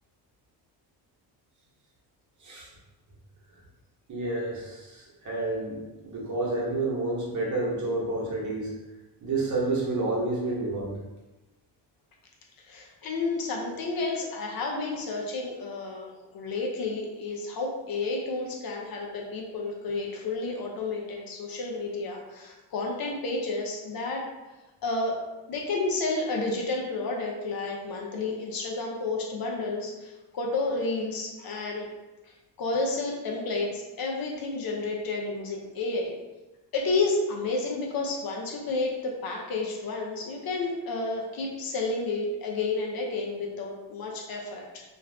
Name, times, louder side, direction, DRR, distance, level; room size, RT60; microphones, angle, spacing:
voice 1, 4.1-8.7 9.2-10.9, right 2 dB, 45° right, -4 dB, 1.0 m, -29 dB
voice 2, 12.7-24.2 24.8-25.2 25.5-31.9 32.2-36.2 36.7-44.8, left 3 dB, 55° left, 0 dB, 0.6 m, -31 dB
2.5 x 2.3 x 3.3 m, 1.1 s
cardioid pair, 105°, 43 cm